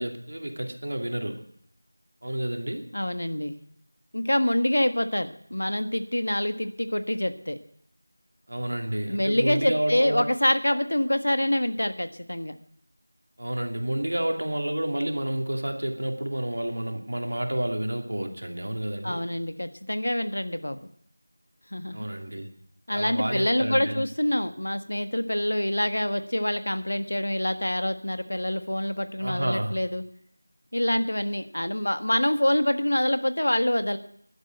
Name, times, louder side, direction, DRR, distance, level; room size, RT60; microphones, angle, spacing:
voice 1, 0.0-1.4 2.2-2.9 8.5-10.2 13.4-19.2 21.9-22.5 22.9-24.0 29.2-29.8, right 1 dB, 65° right, 4 dB, 2.4 m, -30 dB
voice 2, 2.9-3.6 4.1-7.6 9.1-12.6 19.0-20.9 21.7-22.1 22.9-30.0 30.7-34.0, left 1 dB, 90° left, 9 dB, 1.5 m, -26 dB
11.5 x 10.5 x 7.9 m, 0.67 s
figure-of-eight pair, 175°, 0 cm